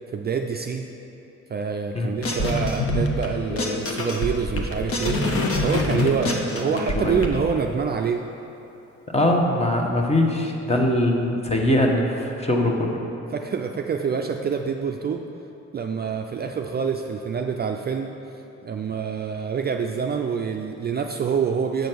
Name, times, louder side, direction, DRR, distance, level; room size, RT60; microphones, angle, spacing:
voice 1, 0.1-0.9 1.5-5.2 5.6-8.2 13.3-15.2 15.7-18.1 18.6-21.9, right 6 dB, 35° right, 3 dB, 0.4 m, -26 dB
sound 1, 2.2-3.3 3.6-7.3, left 2 dB, 50° left, 1.1 m, -25 dB
Guitar, 3.5-7.0, left 2 dB, 75° left, 1.0 m, -37 dB
voice 2, 6.6-7.2 9.1-13.0, left 1 dB, 20° left, 1 dB, 1.1 m, -22 dB
7.8 x 5.1 x 6.1 m, 2.9 s
cardioid pair, 90°, 30 cm